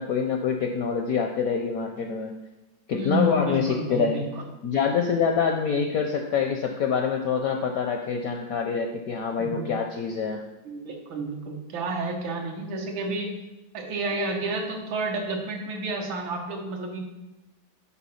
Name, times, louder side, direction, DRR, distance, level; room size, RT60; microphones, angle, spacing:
voice 1, 0.0-2.3 2.9-4.3 4.6-10.4, left 6 dB, 75° left, 4 dB, 0.8 m, -26 dB
voice 2, 2.9-4.4 9.4-9.7 10.7-13.3 13.7-17.0, right 2 dB, 85° right, 2 dB, 1.9 m, -30 dB
7.1 x 4.4 x 5.6 m, 0.98 s
omnidirectional pair, 2.1 m